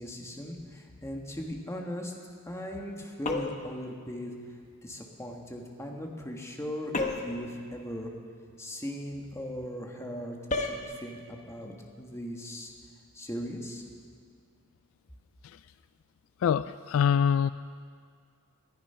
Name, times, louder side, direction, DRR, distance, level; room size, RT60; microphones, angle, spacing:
voice 1, 0.0-2.1 2.4-4.3 4.8-8.1 8.6-10.4 10.6-12.7 13.1-13.8, equal, 15° left, 1 dB, 1.6 m, -38 dB
sound 1, 3.2-3.7 6.9-7.4 10.5-10.8, left 2 dB, 35° left, 1.2 m, -31 dB
voice 2, 16.4-17.5, left 7 dB, 65° left, 15 dB, 0.3 m, -24 dB
19.5 x 11.5 x 5.7 m, 2.1 s
head